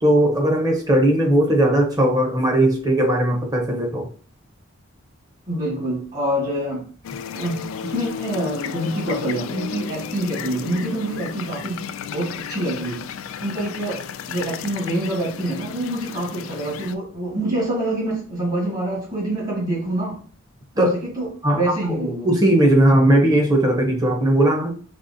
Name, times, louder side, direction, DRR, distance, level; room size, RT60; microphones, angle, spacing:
voice 1, 0.0-4.1 20.8-21.0 21.4-21.6 21.9-24.7, right 1 dB, 20° right, 2 dB, 0.8 m, -18 dB
voice 2, 5.5-6.9 7.3-13.0 13.4-14.0 14.3-20.2 20.7-22.3, right 1 dB, 40° right, -4 dB, 1.7 m, -26 dB
sound 1, 7.0-17.0, left 7 dB, 70° left, 0.3 m, -33 dB
5.4 x 2.9 x 2.7 m, 0.42 s
head